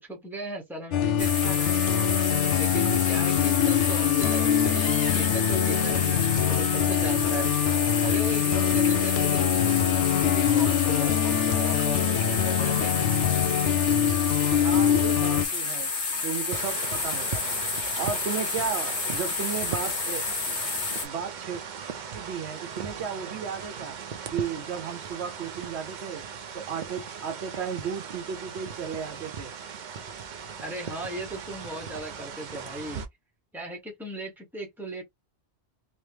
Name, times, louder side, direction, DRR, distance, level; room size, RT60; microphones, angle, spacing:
voice 1, 0.0-1.8 2.5-4.9 5.1-7.5 8.0-13.2 30.6-33.0 33.5-35.0, right 1 dB, ahead, 1.0 m, -37 dB
sound 1, 0.9-15.5, left 9 dB, 90° left, 0.9 m, -24 dB
sound 2, 1.2-21.1, left 4 dB, 45° left, 1.0 m, -30 dB
voice 2, 14.5-15.9 16.2-17.6 18.0-20.2 21.0-21.6 22.1-24.0 24.3-26.2 26.5-29.6, right 7 dB, 70° right, 0.9 m, -34 dB
sound 3, 16.5-33.1, right 6 dB, 50° right, 0.6 m, -38 dB
3.3 x 2.4 x 2.7 m
omnidirectional pair, 1.2 m